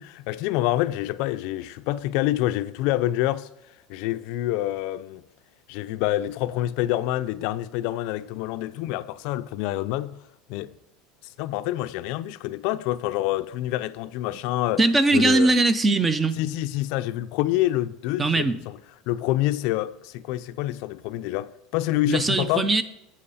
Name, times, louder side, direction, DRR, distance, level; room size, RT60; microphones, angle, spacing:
voice 1, 0.0-3.5 3.9-5.2 5.7-10.2 10.5-10.7 11.4-14.8 15.1-15.5 16.4-18.8 19.1-22.7, left 15 dB, 60° left, 0.4 m, -27 dB
voice 2, 14.8-16.4 18.2-18.6 22.1-22.8, right 2 dB, 15° right, 0.5 m, -20 dB
8.5 x 7.6 x 4.1 m
supercardioid pair, 145°, 0 cm